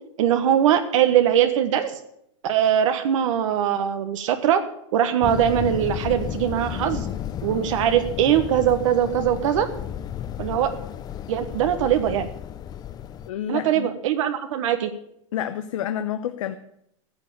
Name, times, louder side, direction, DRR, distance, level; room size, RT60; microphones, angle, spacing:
voice 1, 0.2-2.0 2.4-4.6 4.9-7.1 7.4-9.7 10.4-10.7 11.3-12.3 13.5-14.9, right 10 dB, 75° right, 7 dB, 1.3 m, -21 dB
sound 1, 5.2-13.3, left 10 dB, 25° left, 0.6 m, -33 dB
voice 2, 13.3-13.9 15.3-16.5, left 10 dB, 80° left, 8 dB, 0.9 m, -29 dB
15.0 x 7.2 x 8.7 m, 0.74 s
supercardioid pair, 140°, 16 cm